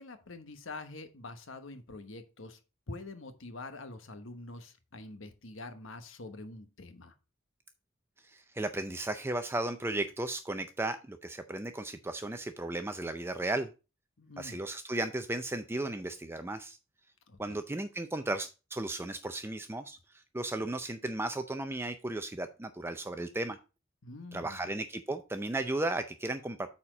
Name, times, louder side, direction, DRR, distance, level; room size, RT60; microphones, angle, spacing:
voice 1, 0.0-2.6 2.9-7.1 14.2-14.6 17.3-17.6 24.0-24.7, left 2 dB, 70° left, 1.1 m, -45 dB
voice 2, 8.2-13.7 14.4-16.8 17.4-23.6 24.3-26.7, right 2 dB, 10° right, 0.4 m, -35 dB
8.7 x 4.3 x 5.0 m
head